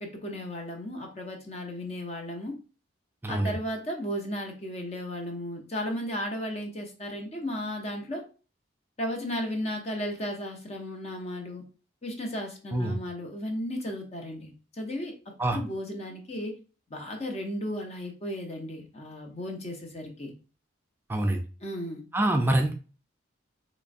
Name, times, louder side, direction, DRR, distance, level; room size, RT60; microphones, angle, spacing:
voice 1, 0.0-2.5 3.3-8.2 9.0-11.6 12.0-15.1 15.5-16.5 16.9-20.3 21.6-22.0, equal, 30° left, 2 dB, 0.7 m, -35 dB
voice 2, 3.2-3.5 12.7-12.9 15.4-15.6 21.1-21.4 22.1-22.7, right 1 dB, 10° right, 3 dB, 0.4 m, -25 dB
3.7 x 3.0 x 2.5 m, 0.36 s
head